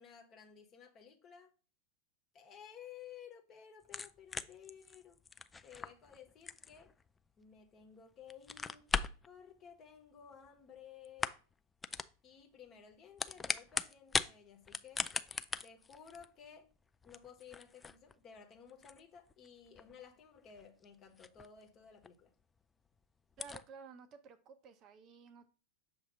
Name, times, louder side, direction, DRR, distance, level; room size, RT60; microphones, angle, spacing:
voice 1, 0.0-1.5 2.3-5.2 5.6-6.9 7.4-8.9 9.2-11.3 12.2-15.1 15.6-16.7 17.0-22.3, left 8 dB, 30° left, 1.2 m, -55 dB
sound 1, 3.8-7.8 8.2-9.3 10.3-10.8 11.0-11.5 11.8-12.1 12.9-14.3 14.6-21.7 22.0-22.1 22.6-22.7 22.9-23.0 23.3-23.6, left 4 dB, 15° left, 0.3 m, -40 dB
voice 2, 23.4-25.5, right 5 dB, 35° right, 0.6 m, -54 dB
6.8 x 2.8 x 5.0 m
figure-of-eight pair, 90°, 0 cm